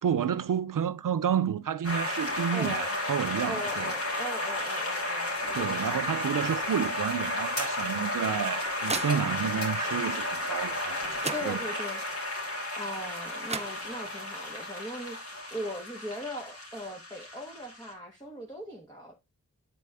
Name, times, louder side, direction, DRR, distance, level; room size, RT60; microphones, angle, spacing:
voice 1, 0.0-3.9 5.5-11.8, right 8 dB, 85° right, 0.5 m, -30 dB
sound 1, 1.8-17.9, left 1 dB, 45° left, 2.7 m, -33 dB
voice 2, 2.5-3.0 3.5-5.9 11.3-12.0 12.8-19.1, equal, 15° left, 1.3 m, -39 dB
sound 2, 8.1-9.7 10.8-10.9 11.2-12.0 13.1-13.2 13.5-14.3, right 3 dB, 20° right, 0.4 m, -38 dB
7.8 x 4.1 x 3.4 m
wide cardioid pair, 55°, 32 cm